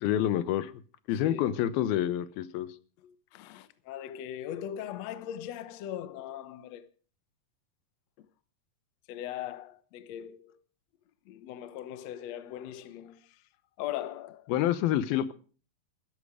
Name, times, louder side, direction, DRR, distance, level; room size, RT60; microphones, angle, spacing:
voice 1, 0.0-0.7 1.1-2.7 14.5-15.3, left 11 dB, 85° left, 2.8 m, -27 dB
voice 2, 3.0-6.9 9.1-10.6 11.3-13.4 13.8-14.5, left 11 dB, 65° left, 1.7 m, -40 dB
16.0 x 14.0 x 4.9 m
omnidirectional pair, 4.2 m